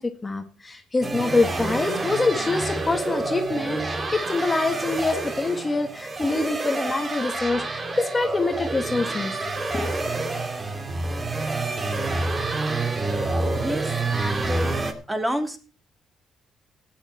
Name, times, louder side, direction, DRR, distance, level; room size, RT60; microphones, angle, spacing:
voice 1, 0.0-9.9, left 3 dB, 25° left, 5 dB, 1.8 m, -25 dB
sound 1, 1.0-14.9, right 2 dB, 30° right, 2.4 m, -28 dB
voice 2, 13.6-15.6, equal, 10° right, 6 dB, 2.9 m, -30 dB
15.5 x 10.0 x 4.3 m, 0.36 s
cardioid pair, 90°, 0 cm